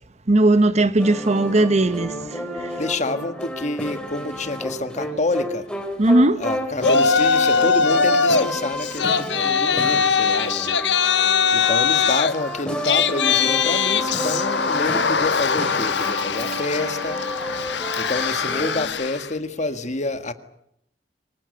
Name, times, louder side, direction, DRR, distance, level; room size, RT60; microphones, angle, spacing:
voice 1, 0.3-2.1 6.0-6.4, right 2 dB, 40° right, 0.9 m, -17 dB
sound 1, 1.0-18.9, equal, 5° left, 3.6 m, -31 dB
voice 2, 2.8-5.7 6.4-10.8 11.5-17.2 18.0-20.3, left 2 dB, 45° left, 1.8 m, -28 dB
Yell, 6.8-8.5 8.8-19.3, left 6 dB, 80° left, 1.3 m, -21 dB
25.0 x 19.5 x 9.4 m
head